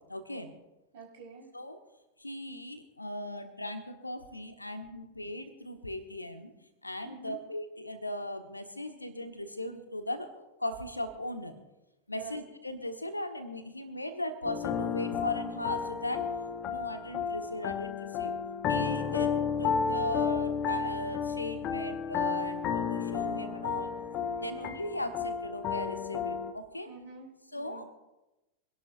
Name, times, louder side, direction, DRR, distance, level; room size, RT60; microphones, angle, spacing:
voice 1, 0.1-0.5 1.5-1.8 2.2-6.5 6.8-11.6 12.1-16.2 16.6-18.3 18.7-23.9 24.3-26.9 27.5-27.8, left 1 dB, 85° left, 8 dB, 1.3 m, -38 dB
voice 2, 0.9-1.5 7.0-7.4 12.1-12.4 18.9-19.2 24.3-24.7 26.8-27.8, right 4 dB, 55° right, -1 dB, 4.3 m, -48 dB
sound 1, 14.4-26.5, left 6 dB, 35° left, 0.9 m, -32 dB
25.0 x 11.5 x 2.6 m, 0.99 s
figure-of-eight pair, 90°, 0 cm